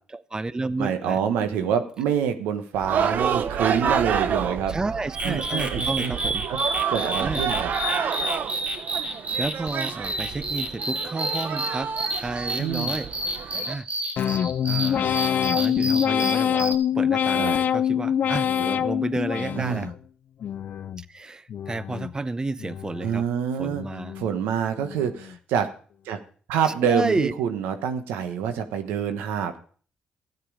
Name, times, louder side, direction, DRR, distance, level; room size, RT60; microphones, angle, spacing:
voice 1, 0.1-1.2 1.5-1.7 4.7-6.5 7.2-7.5 9.0-11.9 12.2-13.1 13.7-13.9 14.2-14.3 14.6-15.1 15.5-19.9 21.0-23.3 23.6-24.2 26.6-27.3, right 3 dB, 25° right, 16 dB, 0.6 m, -31 dB
voice 2, 0.8-4.7 5.2-6.1 6.5-6.6 6.9-7.7 12.6-12.9 17.3-17.5 19.6-19.9 23.0-23.8 24.2-25.7 26.0-26.2 26.5-29.6, right 8 dB, 90° right, 8 dB, 1.2 m, -26 dB
sound 1, 2.7-13.7, right 7 dB, 65° right, 0.8 m, -29 dB
sound 2, 5.1-16.8, right 1 dB, 50° right, 2.8 m, -30 dB
sound 3, 14.2-20.0 20.4-21.0 21.5-22.1 22.6-23.2 23.7-24.3 24.8-25.3, left 9 dB, 65° left, 0.5 m, -25 dB
13.0 x 9.4 x 4.9 m, 0.44 s
supercardioid pair, 65°, 3 cm